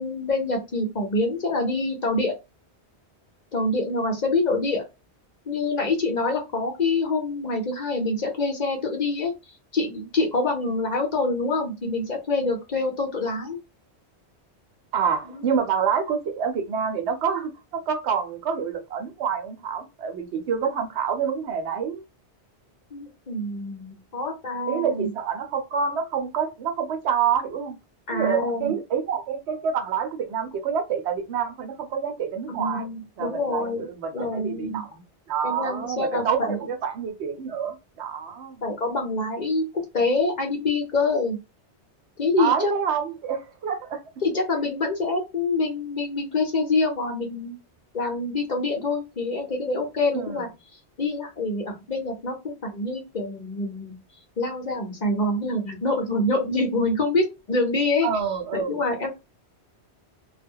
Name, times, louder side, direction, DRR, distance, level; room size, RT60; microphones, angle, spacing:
voice 1, 0.0-2.3 3.5-4.8 5.5-9.3 9.7-13.6 15.3-15.4 22.9-25.1 28.1-28.7 32.5-33.9 34.1-34.8 35.4-36.6 38.6-41.4 42.2-42.7 44.2-47.5 47.9-50.5 51.0-53.9 54.4-58.1 58.5-59.1, left 2 dB, 45° left, 0.7 m, -26 dB
voice 2, 14.9-22.0 24.7-27.8 28.1-32.9 33.2-38.7 42.4-44.0 50.1-50.5 58.0-58.8, right 7 dB, 75° right, 0.9 m, -27 dB
2.2 x 2.0 x 3.5 m
omnidirectional pair, 1.1 m